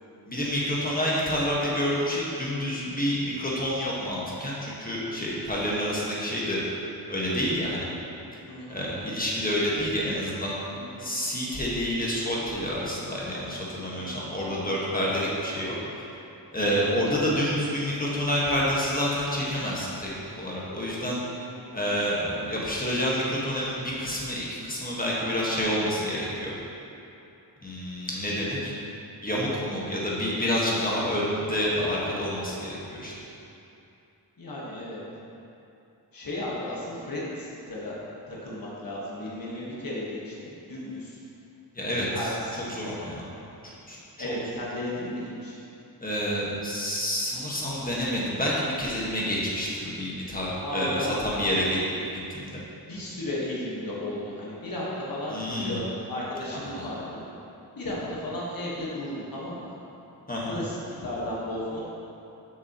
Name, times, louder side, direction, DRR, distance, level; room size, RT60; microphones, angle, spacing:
voice 1, 0.3-6.6 7.1-7.8 8.7-10.5 11.0-15.7 16.5-20.1 20.4-21.2 21.7-26.5 27.6-28.7 29.2-32.7 33.0-33.1 41.7-42.1 42.8-43.1 43.9-44.0 44.2-44.3 46.0-51.0 51.2-51.8 52.1-52.6 55.3-55.8 56.8-56.9 60.3-60.6, equal, 20° left, -6 dB, 1.4 m, -28 dB
voice 2, 8.5-8.8 10.7-11.1 14.0-14.3 14.6-14.9 16.6-16.9 21.4-21.7 34.4-35.0 36.1-38.0 38.3-41.2 42.1-43.1 44.2-45.6 50.6-51.8 52.7-57.2 57.7-59.6 60.5-61.8, left 1 dB, 55° left, -6 dB, 1.4 m, -34 dB
7.0 x 6.1 x 2.9 m, 2.8 s
wide cardioid pair, 95°, 41 cm